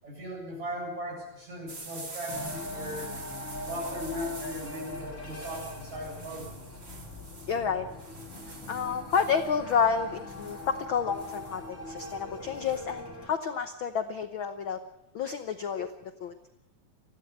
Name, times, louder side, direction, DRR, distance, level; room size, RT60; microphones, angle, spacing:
voice 1, 0.0-3.1 3.6-6.8, equal, 65° right, -1 dB, 9.3 m, -38 dB
sound 1, 1.7-12.8, right 3 dB, 25° right, 1.8 m, -46 dB
sound 2, 2.3-13.3, left 2 dB, 25° left, 3.0 m, -41 dB
voice 2, 7.5-7.9 8.7-14.8 15.1-15.9 16.2-16.3, left 6 dB, 70° left, 9 dB, 1.1 m, -29 dB
21.0 x 15.0 x 8.7 m, 0.85 s
omnidirectional pair, 3.5 m